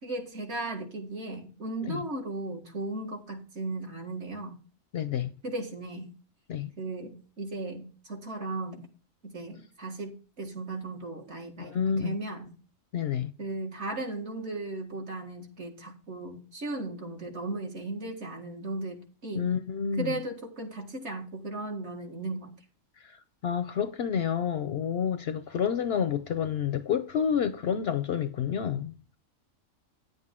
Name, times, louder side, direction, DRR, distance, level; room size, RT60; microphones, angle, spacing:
voice 1, 0.0-4.6 5.4-6.1 6.8-8.9 9.2-12.5 13.4-19.5 20.0-22.5, right 2 dB, 55° right, 2.0 m, -36 dB
voice 2, 4.9-5.3 6.5-6.7 11.6-12.2 12.9-13.3 19.4-20.1 23.0-23.1 23.4-28.9, left 8 dB, 60° left, 0.7 m, -29 dB
10.0 x 8.0 x 3.6 m
omnidirectional pair, 1.4 m